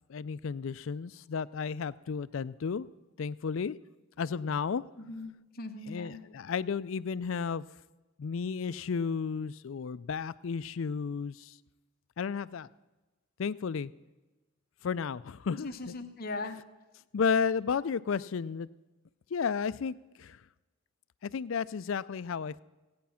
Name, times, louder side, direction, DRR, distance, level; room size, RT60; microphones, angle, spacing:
voice 1, 0.1-2.9 3.2-3.8 4.2-4.8 5.9-7.6 8.2-11.5 12.2-12.7 13.4-13.9 14.8-15.9 17.1-18.7 19.3-20.4 21.2-22.6, left 6 dB, 70° left, 17 dB, 0.4 m, -33 dB
voice 2, 5.0-6.2 15.6-16.6, left 2 dB, 45° left, 6 dB, 1.0 m, -39 dB
16.5 x 9.4 x 5.7 m, 1.1 s
head